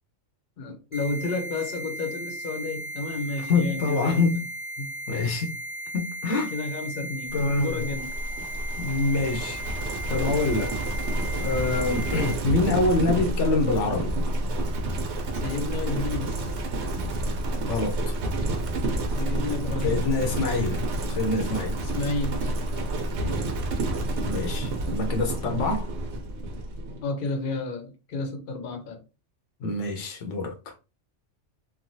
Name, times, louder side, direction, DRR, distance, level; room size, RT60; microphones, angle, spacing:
voice 1, 0.6-4.2 4.8-4.9 6.5-8.1 15.4-16.5 19.2-20.0 21.5-22.9 27.0-29.0, left 3 dB, 50° left, 0.8 m, -32 dB
sound 1, 0.9-12.3, right 1 dB, 25° right, 0.5 m, -36 dB
voice 2, 3.5-4.5 5.1-5.5 5.9-6.5 7.3-7.8 8.8-9.6 10.1-10.8 11.4-14.1 17.7-18.2 19.8-21.8 23.2-23.4 24.3-25.9 29.6-30.7, left 3 dB, 75° left, 0.9 m, -26 dB
Livestock farm animals working animals, 7.4-27.0, right 1 dB, 70° right, 0.9 m, -29 dB
3.1 x 2.2 x 2.6 m
omnidirectional pair, 1.2 m